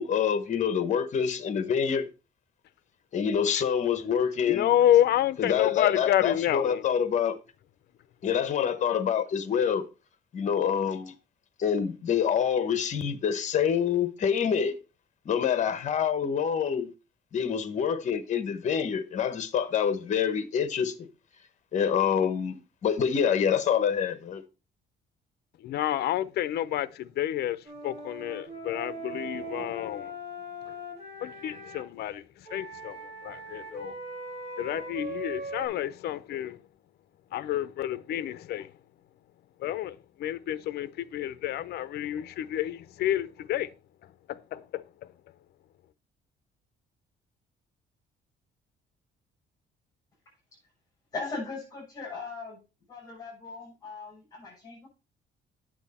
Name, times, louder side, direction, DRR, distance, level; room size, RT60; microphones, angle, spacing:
voice 1, 0.0-2.1 3.1-4.7 5.4-7.4 8.2-9.8 10.3-11.1 11.6-14.7 15.2-16.9 17.3-21.1 21.7-24.4, left 7 dB, 40° left, 1.1 m, -26 dB
voice 2, 4.5-6.8 25.6-30.1 30.7-30.8 31.2-34.0 34.6-36.6 37.3-38.7 39.6-43.7 44.3-44.8, left 12 dB, 55° left, 0.6 m, -29 dB
Wind instrument woodwind instrument, 27.6-31.8 32.4-35.7, right 1 dB, 35° right, 5.1 m, -40 dB
voice 3, 51.1-52.6 52.9-54.9, left 3 dB, 15° left, 6.5 m, -39 dB
9.1 x 7.6 x 4.2 m
cardioid pair, 175°, 19 cm